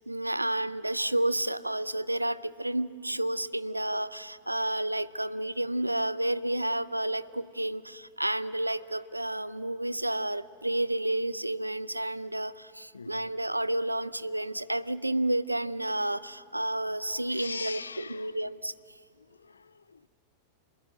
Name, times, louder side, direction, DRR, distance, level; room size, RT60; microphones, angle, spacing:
voice 1, 0.1-17.8 18.1-18.7, right 1 dB, 85° right, 0.5 m, -30 dB
voice 2, 12.9-13.4 17.3-18.5 19.1-20.1, left 4 dB, 75° left, 0.5 m, -42 dB
26.0 x 21.0 x 9.3 m
figure-of-eight pair, 90°, 0 cm